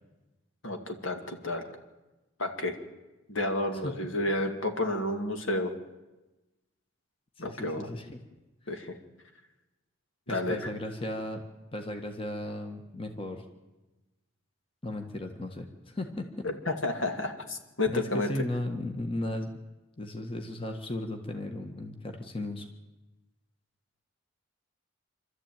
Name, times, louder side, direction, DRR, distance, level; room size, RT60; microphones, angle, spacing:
voice 1, 0.6-1.6 2.4-2.7 3.3-5.7 7.4-7.9 8.7-8.9 10.3-10.6 16.4-18.3, left 2 dB, 75° left, 5 dB, 2.3 m, -31 dB
voice 2, 7.4-8.2 8.6-8.8 10.3-11.4 11.7-13.4 14.8-16.3 17.9-19.5 20.0-22.7, left 1 dB, 25° left, 5 dB, 1.6 m, -36 dB
26.5 x 13.0 x 9.2 m, 1.1 s
head